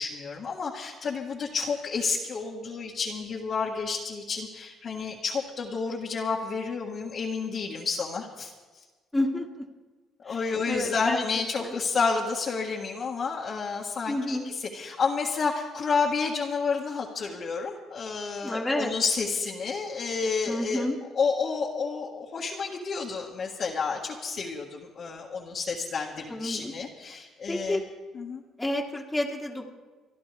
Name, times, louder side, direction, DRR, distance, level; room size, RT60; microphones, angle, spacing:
voice 1, 0.0-8.5 10.2-20.9 21.1-27.8 28.1-28.4, left 5 dB, 50° left, -5 dB, 1.7 m, -30 dB
voice 2, 9.1-9.5 10.3-10.4 10.7-11.2 11.6-11.7 14.1-14.4 18.4-18.9 20.5-21.0 26.3-26.7 27.5-27.8 28.6-29.7, left 1 dB, 10° left, -2 dB, 2.0 m, -29 dB
27.0 x 11.5 x 3.4 m, 1.3 s
cardioid pair, 95°, 0 cm